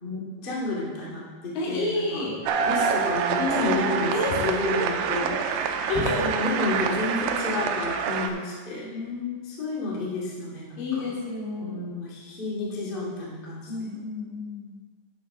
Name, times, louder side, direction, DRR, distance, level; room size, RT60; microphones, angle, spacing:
voice 1, 0.0-2.2 2.6-5.8 6.1-8.9 9.6-11.1 11.6-13.9, left 2 dB, 35° left, -5 dB, 0.8 m, -31 dB
voice 2, 1.6-2.4 3.4-5.3 5.9-6.3 8.9-9.5 10.8-11.9 13.7-14.8, left 3 dB, 80° left, -4 dB, 4.6 m, -30 dB
sound 1, 2.5-8.3, right 7 dB, 80° right, 2.5 m, -27 dB
9.8 x 6.5 x 5.3 m, 1.5 s
omnidirectional pair, 5.2 m